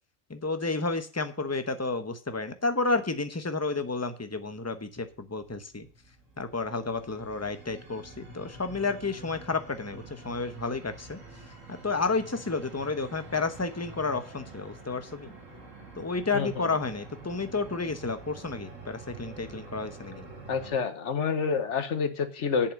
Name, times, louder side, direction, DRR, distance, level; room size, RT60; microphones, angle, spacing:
voice 1, 0.3-5.9 6.4-11.2 11.7-15.3 16.0-20.3, left 3 dB, 15° left, 9 dB, 0.9 m, -31 dB
sound 1, 5.1-20.8, right 2 dB, 90° right, 3.1 m, -47 dB
voice 2, 16.3-16.7 20.5-22.7, left 5 dB, 70° left, 10 dB, 1.5 m, -28 dB
8.4 x 7.1 x 7.2 m, 0.38 s
omnidirectional pair, 1.3 m